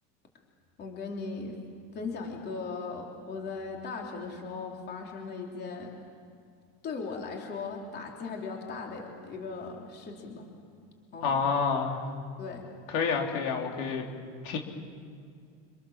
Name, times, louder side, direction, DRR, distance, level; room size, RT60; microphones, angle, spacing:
voice 1, 0.8-1.6 1.9-5.9 6.8-10.5 11.1-11.4 12.4-12.6, left 4 dB, 30° left, 1 dB, 3.5 m, -38 dB
voice 2, 11.2-12.0 12.9-14.1 14.4-14.6, left 5 dB, 65° left, 1 dB, 3.5 m, -28 dB
26.5 x 26.5 x 7.4 m, 2.2 s
supercardioid pair, 160°, 34 cm